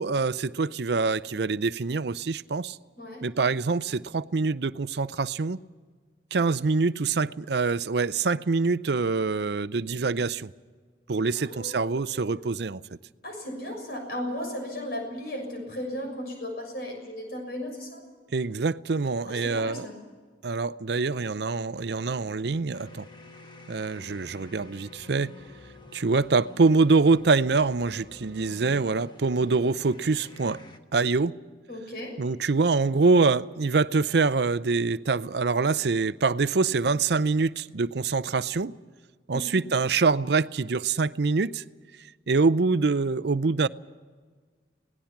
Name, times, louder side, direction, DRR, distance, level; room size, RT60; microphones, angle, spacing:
voice 1, 0.0-2.8 3.2-5.6 6.3-10.5 11.1-12.8 18.3-19.9 20.4-23.0 23.7-25.3 25.9-30.6 30.9-31.3 32.2-38.7 39.3-41.6 42.3-43.7, right 4 dB, 65° right, 0.5 m, -25 dB
voice 2, 11.3-12.4 13.2-18.0 19.3-19.9 31.7-32.1 39.3-39.5, left 1 dB, 55° left, 6.6 m, -36 dB
sound 1, 22.7-30.8, left 2 dB, 25° left, 1.3 m, -49 dB
26.5 x 18.5 x 5.9 m
head